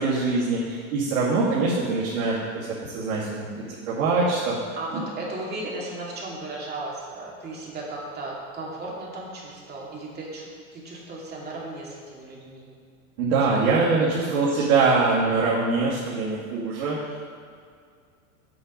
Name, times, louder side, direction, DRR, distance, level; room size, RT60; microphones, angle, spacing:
voice 1, 0.0-4.6 4.9-5.0 13.2-17.0, right 3 dB, 65° right, -8 dB, 2.4 m, -23 dB
voice 2, 4.7-12.7 13.5-13.9 14.2-14.7, right 2 dB, 25° right, -4 dB, 2.7 m, -36 dB
8.5 x 5.5 x 6.6 m, 2.2 s
supercardioid pair, 125°, 42 cm